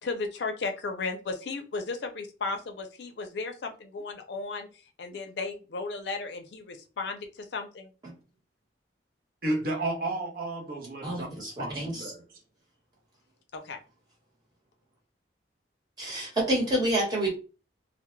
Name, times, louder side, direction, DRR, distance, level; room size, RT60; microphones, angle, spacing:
voice 1, 0.0-4.7 5.0-7.9 13.5-13.8, left 3 dB, 70° left, 6 dB, 0.5 m, -35 dB
voice 2, 9.4-12.2, right 2 dB, 50° right, 3 dB, 0.6 m, -32 dB
voice 3, 11.0-12.1 16.0-17.3, right 1 dB, 20° right, -3 dB, 1.1 m, -28 dB
2.2 x 2.0 x 3.0 m, 0.33 s
head